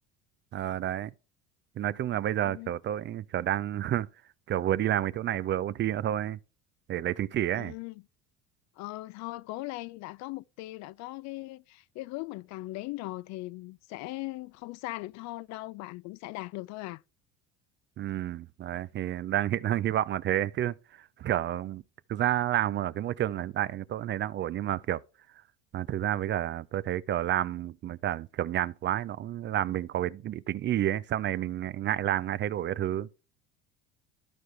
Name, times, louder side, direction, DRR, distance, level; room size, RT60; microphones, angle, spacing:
voice 1, 0.5-1.1 1.8-4.1 4.5-6.4 6.9-7.7 18.0-20.7 21.2-21.8 22.1-25.0 25.7-33.1, right 12 dB, 40° right, 0.4 m, -30 dB
voice 2, 2.4-2.8 7.5-8.0 8.8-17.0, left 19 dB, 60° left, 0.4 m, -39 dB
13.5 x 4.7 x 3.2 m
supercardioid pair, 90°, 31 cm